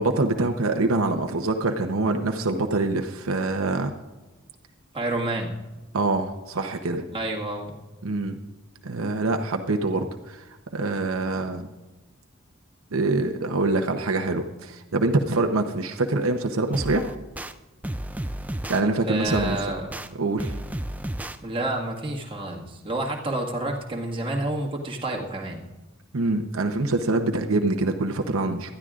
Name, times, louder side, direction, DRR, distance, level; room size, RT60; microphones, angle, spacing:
voice 1, 0.0-3.9 5.9-7.1 8.0-8.4 8.8-10.4 10.7-11.7 12.9-17.1 18.7-19.6 20.2-20.5 26.1-28.7, right 2 dB, 80° right, 4 dB, 0.9 m, -25 dB
voice 2, 4.9-5.5 7.1-7.7 19.1-19.9 21.4-25.6, right 1 dB, 25° right, -2 dB, 1.8 m, -29 dB
sound 1, 16.7-17.5 17.8-18.8 19.3-20.1 20.4-21.4, right 1 dB, 5° right, 0.4 m, -32 dB
19.5 x 12.5 x 2.5 m, 1.2 s
head